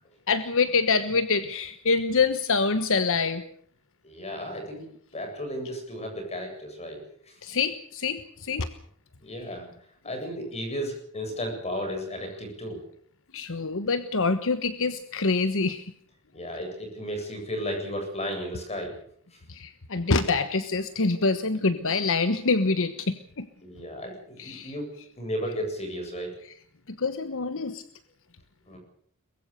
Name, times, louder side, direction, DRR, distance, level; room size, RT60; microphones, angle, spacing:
voice 1, 0.3-3.4 7.4-8.7 9.4-9.5 13.3-15.9 16.5-16.6 19.5-23.5 24.4-24.8 25.4-25.5 26.4-26.6 26.9-27.8, left 4 dB, 65° left, 10 dB, 1.2 m, -26 dB
voice 2, 4.0-4.8 5.1-7.4 9.2-9.7 10.0-12.8 16.3-18.9 19.3-19.4 23.6-24.9 25.2-26.3 28.7-28.8, equal, 30° left, 4 dB, 8.0 m, -34 dB
23.0 x 22.0 x 6.9 m, 0.63 s
head